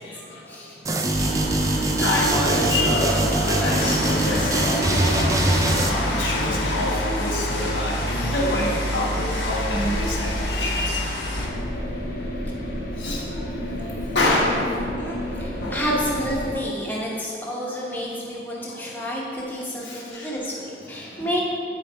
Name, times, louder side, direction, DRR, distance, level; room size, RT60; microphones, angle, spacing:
voice 1, 0.5-0.8 13.0-13.1 14.5-21.4, equal, 10° left, -5 dB, 0.8 m, -30 dB
sound 1, 0.9-5.9, right 2 dB, 15° right, 0.4 m, -23 dB
sound 2, 1.1-11.5, left 1 dB, 65° left, 1.2 m, -27 dB
voice 2, 2.0-3.2 3.5-11.0 13.0-13.2 14.1-14.6 15.6-15.8 19.9-20.3, left 1 dB, 85° left, -4 dB, 1.4 m, -26 dB
sound 3, 11.4-16.5, equal, 50° left, 0.9 m, -31 dB
8.3 x 5.0 x 3.3 m, 2.5 s
head